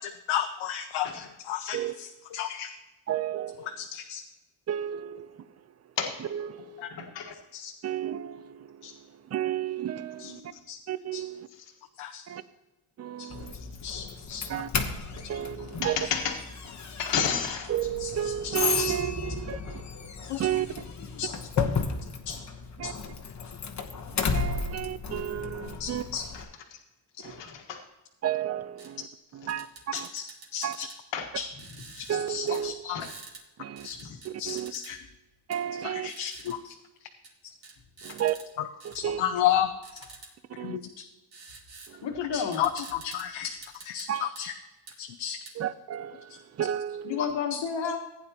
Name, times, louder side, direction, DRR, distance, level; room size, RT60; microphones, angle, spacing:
voice 1, 0.0-2.7 3.8-4.2 7.5-7.7 8.8-8.9 10.2-10.3 10.7-10.8 11.1-11.2 12.0-12.2 13.2-13.3 13.5-14.6 18.0-18.9 20.2-20.4 21.2-21.3 21.6-21.7 22.3-22.4 22.8-22.9 25.8-26.3 29.9-30.2 30.5-30.9 31.3-31.5 31.9-33.1 33.8-35.0 35.8-36.8 38.9-40.0 40.6-41.0 42.3-44.5 45.0-45.4 47.2-47.9, left 10 dB, 85° left, 7 dB, 0.8 m, -33 dB
voice 2, 3.1-3.7 4.7-5.6 6.3-6.9 7.8-10.5 10.9-11.5 12.3-12.4 13.0-13.5 14.5-14.7 15.3-16.0 17.7-19.8 20.4-20.7 22.8-22.9 24.1-26.0 27.2-27.4 28.2-29.1 29.3-30.1 30.6-30.8 32.1-32.8 33.6-33.9 34.2-34.7 35.5-36.1 38.0-38.4 38.8-39.2 40.6-40.8 41.9-42.1 44.1-44.3 45.6-47.3, right 11 dB, 35° right, 14 dB, 0.5 m, -32 dB
voice 3, 6.9-7.3 10.2-10.6 13.6-13.8 15.8-16.4 17.0-17.7 26.3-26.4 27.2-27.8 31.1-31.3 32.9-33.0 42.0-42.6 47.0-48.0, left 7 dB, 65° left, 2 dB, 1.6 m, -31 dB
Doorbell, 13.3-26.4, left 4 dB, 35° left, 1.1 m, -34 dB
sound 1, 28.8-28.9 29.5-31.0 31.6-32.2 32.5-32.6 33.0-33.4 33.8-34.9 35.5-35.6 36.1-36.6 37.2-37.3 37.6-38.5 38.8-39.0 39.8-40.3 41.3-41.9 42.2-42.3 42.5-43.3 43.6-44.4 44.9-45.0 45.5-45.6, right 4 dB, 50° right, 2.4 m, -47 dB
15.5 x 9.4 x 2.9 m, 1.1 s
cardioid pair, 125°, 47 cm